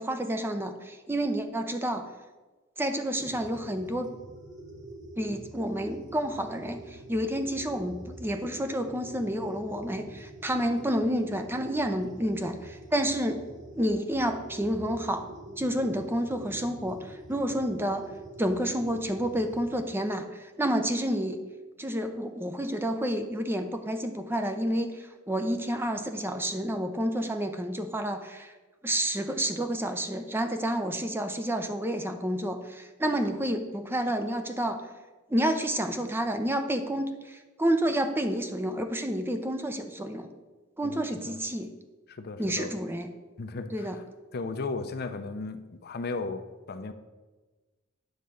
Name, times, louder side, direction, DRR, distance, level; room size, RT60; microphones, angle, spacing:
voice 1, 0.0-2.0 2.8-4.1 5.2-13.4 13.8-18.1 18.4-20.2 20.6-21.4 21.8-24.9 25.3-28.5 28.8-34.8 35.3-40.3 40.8-41.7 42.4-43.1 43.7-44.0, equal, 10° right, 6 dB, 0.5 m, -29 dB
sound 1, 3.2-19.8, right 1 dB, 40° right, 1.5 m, -46 dB
voice 2, 40.8-41.4 42.1-42.8 43.4-44.0 44.3-46.9, left 3 dB, 50° left, 9 dB, 0.6 m, -36 dB
9.5 x 3.7 x 6.9 m, 1.2 s
head